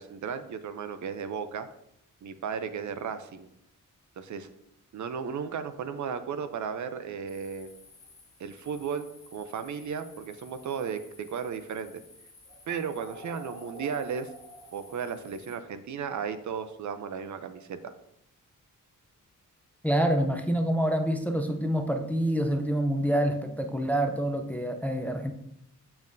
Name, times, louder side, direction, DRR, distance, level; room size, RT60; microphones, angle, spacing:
voice 1, 0.0-1.7 2.2-3.5 4.2-4.5 4.9-7.7 8.4-12.0 12.7-14.3 14.7-17.9, right 6 dB, 65° right, 10 dB, 0.5 m, -35 dB
sound 1, 7.3-15.6, equal, 40° left, 1.8 m, -50 dB
voice 2, 19.8-25.3, right 1 dB, 5° left, 5 dB, 0.4 m, -27 dB
6.9 x 5.3 x 2.6 m, 0.78 s
wide cardioid pair, 160°, 32 cm